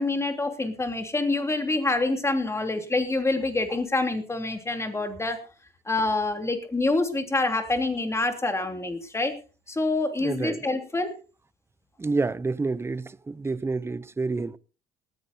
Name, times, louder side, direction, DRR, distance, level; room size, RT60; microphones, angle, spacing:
voice 1, 0.0-5.4 5.9-9.3 9.7-11.2, left 2 dB, 15° left, 3.1 m, -26 dB
voice 2, 10.2-10.7 12.0-14.6, right 3 dB, 15° right, 0.6 m, -28 dB
19.0 x 14.5 x 2.7 m
cardioid pair, 110°, 17 cm